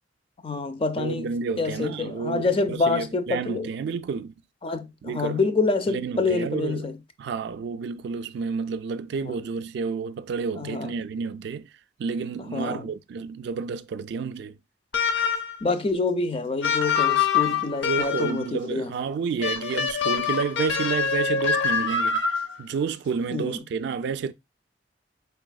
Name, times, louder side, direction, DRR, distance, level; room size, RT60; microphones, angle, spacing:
voice 1, 0.4-1.3 1.6-3.7 4.6-7.0 9.2-9.4 10.6-10.9 12.5-12.9 15.6-18.9 23.3-23.6, left 3 dB, 30° left, 0.5 m, -27 dB
voice 2, 1.0-4.3 5.0-5.4 5.9-6.9 7.2-11.7 12.0-14.6 17.8-24.3, right 5 dB, 65° right, 0.3 m, -30 dB
sound 1, 14.9-15.6 16.6-18.5 19.4-22.6, left 6 dB, 80° left, 0.7 m, -25 dB
4.8 x 3.4 x 2.2 m
head